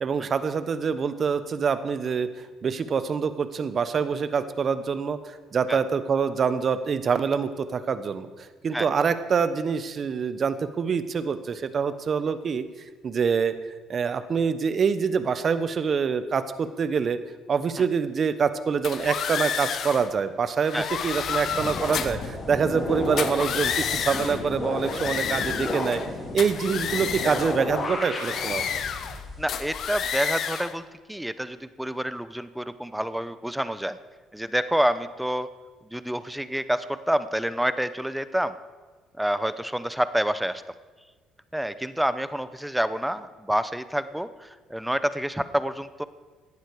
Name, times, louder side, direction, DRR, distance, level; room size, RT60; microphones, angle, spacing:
voice 1, 0.0-2.3 2.6-8.3 8.6-12.6 13.0-13.5 13.9-17.2 17.5-26.0 26.3-28.8, right 6 dB, 45° right, 12 dB, 1.0 m, -25 dB
sound 1, 18.8-20.1 20.6-22.3 23.1-24.4 24.8-26.1 26.4-27.6 28.1-29.2 29.5-30.7, left 8 dB, 60° left, 1.0 m, -30 dB
sound 2, 21.2-30.0, left 2 dB, 35° left, 3.6 m, -33 dB
voice 2, 29.4-34.0 34.3-35.5 35.9-38.5 39.2-40.6 41.5-46.0, equal, 5° right, 13 dB, 0.7 m, -28 dB
17.0 x 11.5 x 4.8 m, 1.4 s
cardioid pair, 95°, 0 cm